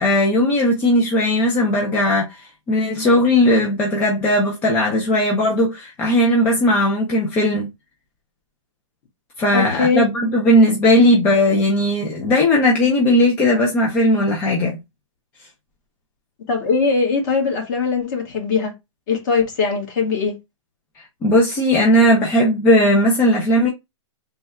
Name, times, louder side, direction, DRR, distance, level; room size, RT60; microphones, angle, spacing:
voice 1, 0.0-7.7 9.4-14.8 21.2-23.7, left 1 dB, 10° left, 0.4 m, -17 dB
voice 2, 9.5-10.0 16.5-18.7 19.1-20.3, left 5 dB, 35° left, 1.3 m, -20 dB
3.4 x 2.2 x 4.1 m
hypercardioid pair, 160°, 16 cm